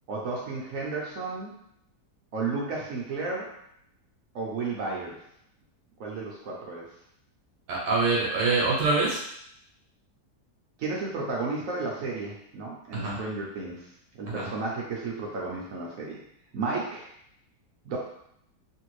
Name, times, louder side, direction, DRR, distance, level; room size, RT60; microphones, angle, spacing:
voice 1, 0.1-1.5 2.3-3.5 4.3-5.2 6.0-6.9 10.8-13.9 14.2-16.2 16.5-17.1 17.8-18.0, right 3 dB, 65° right, -3 dB, 0.9 m, -33 dB
voice 2, 7.7-9.2 12.9-13.2 14.3-14.5, right 3 dB, 80° right, -3 dB, 1.2 m, -25 dB
3.1 x 2.6 x 3.0 m, 0.72 s
omnidirectional pair, 1.8 m